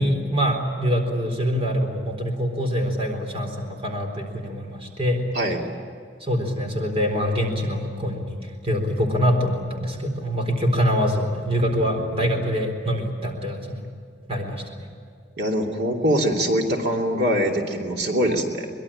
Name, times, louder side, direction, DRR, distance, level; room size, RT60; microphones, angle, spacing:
voice 1, 0.0-5.3 6.2-8.4 8.6-13.8 14.3-14.6, equal, 35° right, 3 dB, 4.1 m, -24 dB
voice 2, 11.6-12.3 15.4-18.7, equal, 65° right, 1 dB, 3.0 m, -24 dB
24.0 x 22.0 x 8.8 m, 2.3 s
head